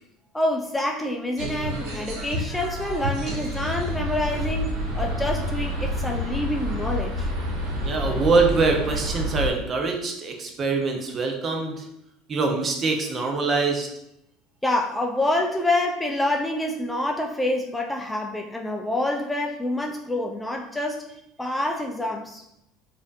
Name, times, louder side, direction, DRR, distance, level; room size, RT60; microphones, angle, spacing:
voice 1, 0.3-7.3 14.6-21.0 21.4-22.4, left 1 dB, 10° left, 1 dB, 0.4 m, -27 dB
sound 1, 1.4-9.5, equal, 70° right, 1.3 m, -28 dB
voice 2, 7.8-11.9 12.3-13.9, right 4 dB, 35° right, 3 dB, 0.7 m, -24 dB
4.9 x 2.6 x 2.5 m, 0.82 s
supercardioid pair, 105°, 0 cm